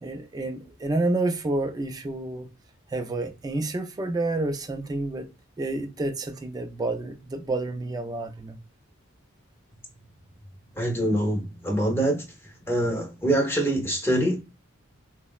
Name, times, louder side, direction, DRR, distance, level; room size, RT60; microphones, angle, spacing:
voice 1, 0.0-2.5 2.9-5.3 5.6-8.6, right 2 dB, 20° right, 0.3 m, -29 dB
voice 2, 10.8-12.2 12.7-14.4, right 1 dB, 10° left, 0.6 m, -24 dB
3.8 x 2.0 x 2.2 m
head